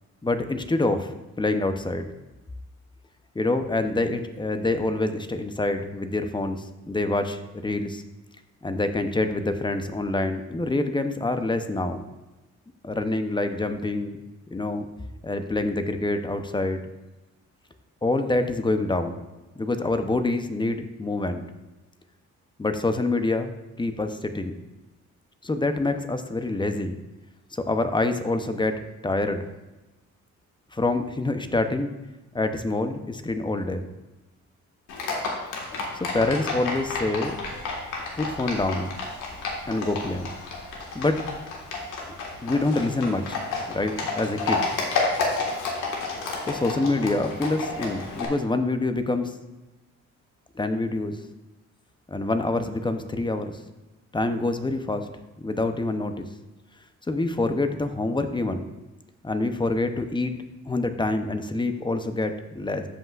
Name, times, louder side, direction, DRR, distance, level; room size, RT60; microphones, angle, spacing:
voice 1, 0.2-2.1 3.3-8.0 8.6-12.0 12.8-14.2 14.5-14.9 15.2-16.9 18.0-19.2 19.6-21.4 22.6-24.5 25.4-26.9 27.5-29.5 30.7-31.9 32.3-33.8 35.9-37.4 38.2-38.9 39.7-40.3 40.9-41.3 42.4-43.4 43.7-44.7 46.5-49.4 50.5-51.2 52.1-53.5 54.1-55.1 55.4-56.2 57.1-58.7 59.2-62.9, left 2 dB, 15° left, 8 dB, 0.7 m, -26 dB
Livestock farm animals working animals, 34.9-48.3, left 3 dB, 85° left, 1.7 m, -31 dB
13.5 x 5.5 x 2.5 m, 1.0 s
cardioid pair, 90°, 30 cm